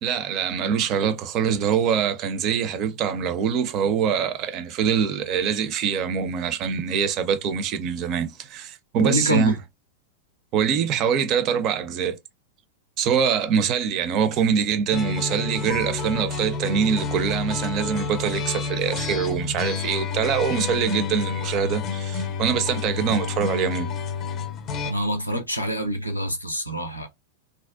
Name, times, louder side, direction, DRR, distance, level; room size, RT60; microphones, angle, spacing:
voice 1, 0.0-9.6 10.5-12.2 13.0-23.9, right 7 dB, 35° right, 0.4 m, -24 dB
voice 2, 9.0-9.5 24.8-27.1, equal, 85° left, 0.5 m, -26 dB
sound 1, 14.9-24.9, left 5 dB, 35° left, 0.5 m, -29 dB
2.5 x 2.0 x 2.4 m
figure-of-eight pair, 90°, 0 cm